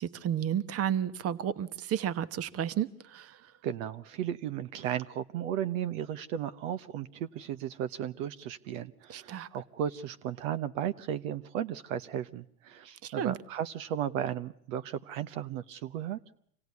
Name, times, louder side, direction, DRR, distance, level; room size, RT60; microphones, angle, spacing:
voice 1, 0.0-3.4 9.1-9.5 13.0-13.3, right 9 dB, 30° right, 14 dB, 1.2 m, -32 dB
voice 2, 3.6-16.2, right 10 dB, 60° right, 11 dB, 1.1 m, -35 dB
26.0 x 17.0 x 9.5 m, 0.68 s
hypercardioid pair, 110°, 44 cm